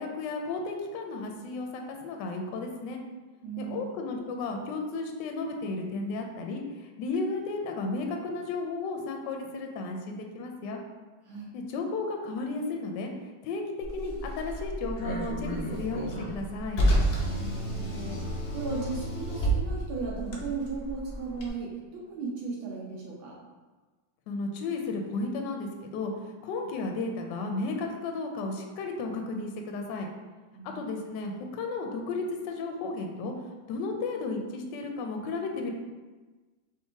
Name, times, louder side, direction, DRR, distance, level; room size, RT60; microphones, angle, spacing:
voice 1, 0.0-3.0 3.6-10.8 11.5-13.1 13.4-13.6 13.9-16.8 24.3-30.1 30.7-33.3 33.7-35.7, left 3 dB, 75° left, 3 dB, 1.1 m, -34 dB
voice 2, 3.4-4.0 11.2-11.5 17.2-23.3 30.5-30.9, right 4 dB, 80° right, -4 dB, 1.6 m, -36 dB
Car, 13.8-21.5, right 1 dB, 90° left, 0.5 m, -30 dB
4.7 x 2.9 x 3.4 m, 1.3 s
omnidirectional pair, 2.1 m